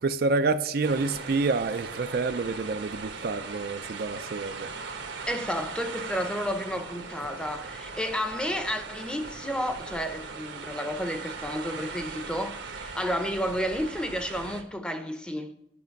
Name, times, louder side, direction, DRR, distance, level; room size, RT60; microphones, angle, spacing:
voice 1, 0.0-4.7, right 3 dB, 55° right, 0.4 m, -28 dB
sound 1, 0.8-14.6, right 4 dB, 80° right, 1.3 m, -39 dB
voice 2, 5.3-15.5, equal, 5° left, 0.7 m, -31 dB
10.5 x 6.0 x 5.8 m
head